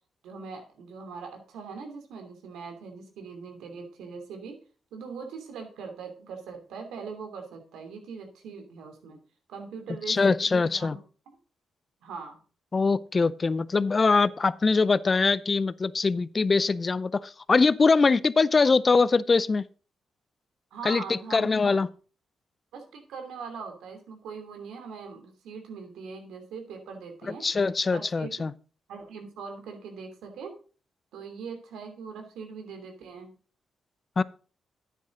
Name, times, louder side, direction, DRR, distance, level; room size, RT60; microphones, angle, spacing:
voice 1, 0.2-4.6 4.9-9.2 9.5-11.0 12.0-12.4 20.7-21.7 22.7-27.5 27.9-28.3 28.9-30.5 31.1-33.3, right 5 dB, 90° right, 2.8 m, -41 dB
voice 2, 10.1-11.0 12.7-19.6 20.8-21.9 27.4-28.5 34.2-34.3, left 4 dB, 40° left, 0.6 m, -23 dB
10.5 x 9.2 x 3.8 m
cardioid pair, 70°, 0 cm